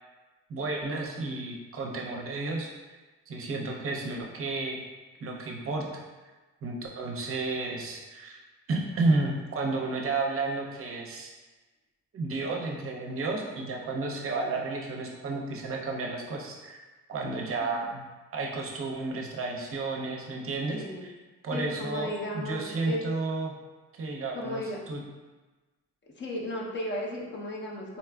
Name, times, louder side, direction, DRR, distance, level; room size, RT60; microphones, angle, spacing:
voice 1, 0.5-2.7 3.3-4.8 5.2-6.0 6.6-8.4 8.7-11.3 12.1-18.0 18.3-21.1 21.4-23.5 24.0-25.0, right 3 dB, 45° right, -1 dB, 0.6 m, -32 dB
voice 2, 20.8-21.1 21.5-23.0 24.3-24.8 26.2-28.0, left 1 dB, 40° left, -2 dB, 0.6 m, -35 dB
3.9 x 2.4 x 2.2 m, 1.2 s
cardioid pair, 90°, 30 cm